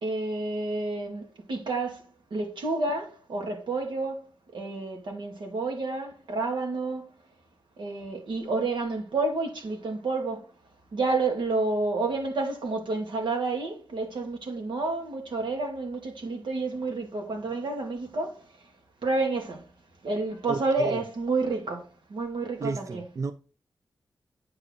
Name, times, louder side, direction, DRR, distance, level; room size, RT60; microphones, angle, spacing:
voice 1, 0.0-4.3 4.5-7.1 7.8-10.5 10.9-18.4 19.0-19.6 20.0-23.1, right 3 dB, 85° right, 2.5 m, -30 dB
voice 2, 20.5-21.0 22.6-23.3, right 4 dB, 40° right, 0.5 m, -32 dB
8.7 x 6.3 x 3.9 m
wide cardioid pair, 150°, 8 cm